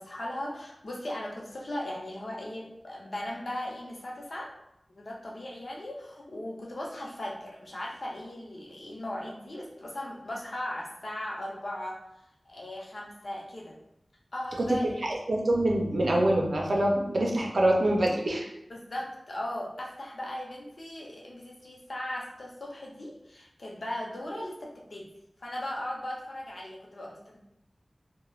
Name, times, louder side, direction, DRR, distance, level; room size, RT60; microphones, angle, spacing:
voice 1, 0.0-4.5 5.0-12.0 12.5-13.8 14.3-15.1 18.7-25.1 25.4-27.4, left 1 dB, 65° left, -2 dB, 0.6 m, -38 dB
voice 2, 15.3-18.5, right 1 dB, 70° right, -1 dB, 0.5 m, -25 dB
3.2 x 2.1 x 2.3 m, 0.80 s
wide cardioid pair, 70°, 0 cm